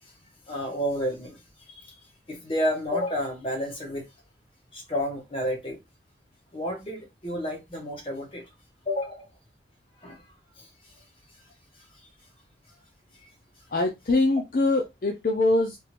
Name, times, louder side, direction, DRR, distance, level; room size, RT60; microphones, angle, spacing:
voice 1, 0.5-1.4 1.8-1.9 2.3-4.1 4.7-5.8 6.5-8.4 8.9-9.2 10.0-10.2, equal, 30° left, 1.1 m, -30 dB
voice 2, 13.7-15.8, left 2 dB, 50° left, 0.4 m, -23 dB
3.5 x 2.5 x 2.9 m
head